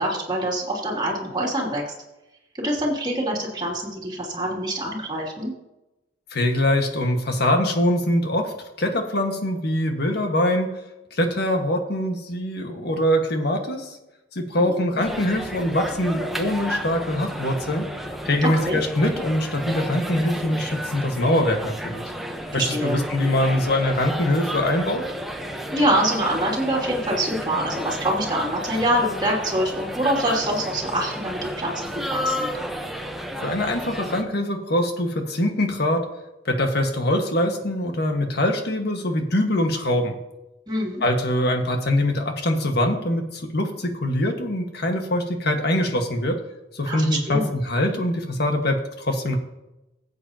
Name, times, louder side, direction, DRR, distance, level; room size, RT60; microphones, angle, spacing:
voice 1, 0.0-1.9 2.5-5.5 14.6-15.0 18.4-18.8 22.5-23.0 25.7-32.5 40.7-41.0 46.9-47.5, right 1 dB, 25° right, -3 dB, 2.8 m, -25 dB
voice 2, 6.3-10.7 11.1-14.0 14.3-17.9 18.2-22.0 22.5-25.0 33.4-36.0 36.4-40.2 41.0-46.4 46.7-49.4, left 1 dB, 60° left, 3 dB, 1.7 m, -23 dB
sound 1, 15.0-34.2, equal, ahead, 1.0 m, -32 dB
16.5 x 8.3 x 2.9 m, 0.95 s
head